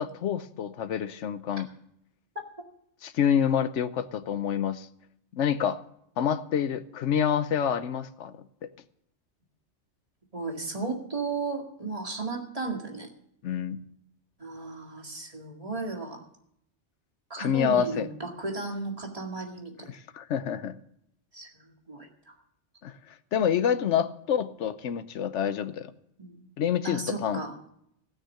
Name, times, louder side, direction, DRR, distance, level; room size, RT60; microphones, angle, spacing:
voice 1, 0.0-1.7 3.0-4.9 5.3-5.8 6.2-8.3 8.6-8.7 13.4-13.8 17.4-18.1 19.9-20.8 22.8-22.9 23.3-25.9 26.6-27.4, left 8 dB, 85° left, 12 dB, 1.1 m, -27 dB
voice 2, 10.3-13.1 14.4-16.2 17.3-19.9 21.3-22.3 26.2-26.5 26.8-27.6, right 3 dB, 30° right, 2 dB, 2.1 m, -35 dB
17.0 x 6.4 x 8.2 m, 0.74 s
omnidirectional pair, 1.2 m